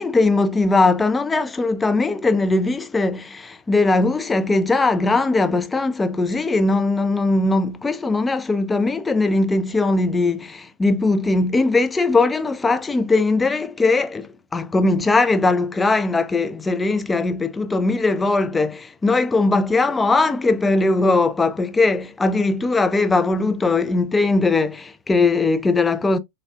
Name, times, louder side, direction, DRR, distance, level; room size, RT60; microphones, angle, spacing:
voice 1, 0.0-26.2, left 3 dB, 10° left, 0.4 m, -20 dB
3.2 x 2.4 x 2.4 m
figure-of-eight pair, 90°, 0 cm